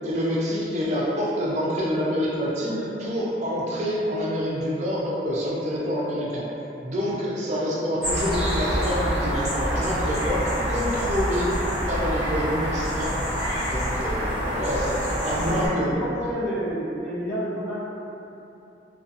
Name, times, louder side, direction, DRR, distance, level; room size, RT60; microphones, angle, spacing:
voice 1, 0.0-6.4 6.8-11.5 11.9-16.0, equal, 40° right, -5 dB, 0.4 m, -27 dB
sound 1, 8.0-15.7, equal, 5° right, 1.0 m, -26 dB
voice 2, 15.5-17.9, equal, 65° left, -9 dB, 0.8 m, -31 dB
2.5 x 2.3 x 2.5 m, 2.9 s
head